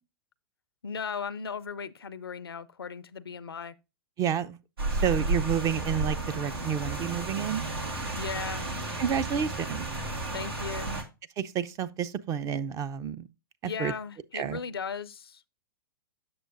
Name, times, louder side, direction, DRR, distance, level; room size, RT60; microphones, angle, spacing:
voice 1, 0.8-3.7 8.2-8.7 10.3-10.9 13.6-15.4, left 6 dB, 90° left, 0.5 m, -37 dB
voice 2, 4.2-4.6 5.0-7.6 9.0-9.9 11.4-13.3 13.6-13.9 14.3-14.6, right 8 dB, 25° right, 0.5 m, -30 dB
Rain, 4.8-11.0, right 2 dB, 90° right, 1.9 m, -32 dB
7.7 x 6.5 x 2.5 m
hypercardioid pair, 110°, 12 cm